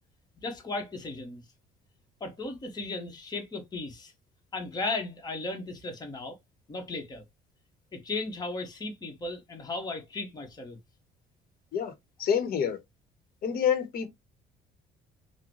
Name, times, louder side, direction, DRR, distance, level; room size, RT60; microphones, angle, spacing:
voice 1, 0.4-1.4 2.2-4.1 4.5-6.4 6.7-7.2 7.9-10.8, left 3 dB, 25° left, 1.0 m, -36 dB
voice 2, 12.2-12.8 13.4-14.1, left 8 dB, 60° left, 0.9 m, -27 dB
3.8 x 2.1 x 3.0 m
cardioid pair, 110°, 17 cm